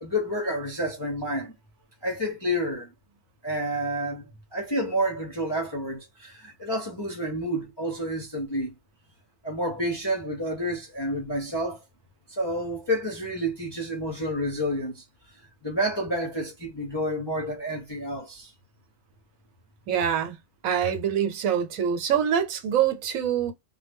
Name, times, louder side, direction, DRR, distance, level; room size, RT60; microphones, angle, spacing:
voice 1, 0.0-1.5 2.0-2.9 3.4-8.7 9.4-11.8 12.3-15.0 15.6-18.5, equal, 35° left, 0.4 m, -29 dB
voice 2, 19.9-20.4 20.6-23.5, right 8 dB, 80° right, 1.1 m, -25 dB
2.2 x 2.1 x 3.4 m
omnidirectional pair, 1.4 m